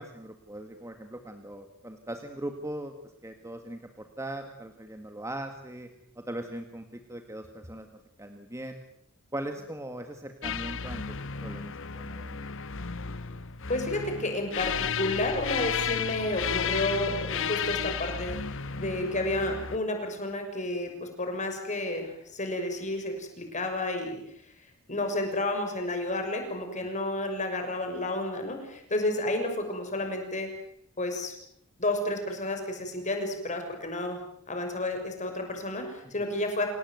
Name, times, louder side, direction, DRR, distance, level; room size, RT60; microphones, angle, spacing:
voice 1, 0.0-2.9 3.2-5.9 6.2-7.9 8.2-8.8 9.3-12.4 36.0-36.1, right 1 dB, 15° right, 6 dB, 1.8 m, -40 dB
sound 1, 10.4-19.8, left 6 dB, 60° left, 1.2 m, -33 dB
voice 2, 13.7-18.4 18.8-24.2 24.9-30.5 31.0-31.3 31.8-34.2 34.5-36.7, left 1 dB, 35° left, 5 dB, 6.4 m, -31 dB
28.5 x 18.5 x 9.3 m, 0.73 s
head